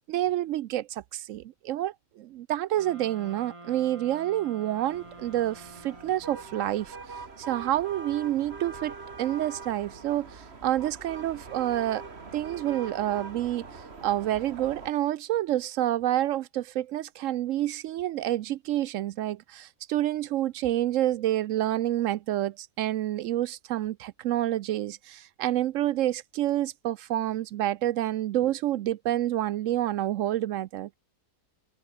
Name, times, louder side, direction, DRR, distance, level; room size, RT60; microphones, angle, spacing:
voice 1, 0.1-7.0 7.4-12.0 12.3-13.6 14.0-31.0, right 13 dB, 70° right, 0.7 m, -28 dB
sound 1, 2.7-6.6, right 2 dB, 20° right, 2.7 m, -48 dB
sound 2, 4.9-14.9, right 4 dB, 40° right, 2.2 m, -43 dB
omnidirectional pair, 1.7 m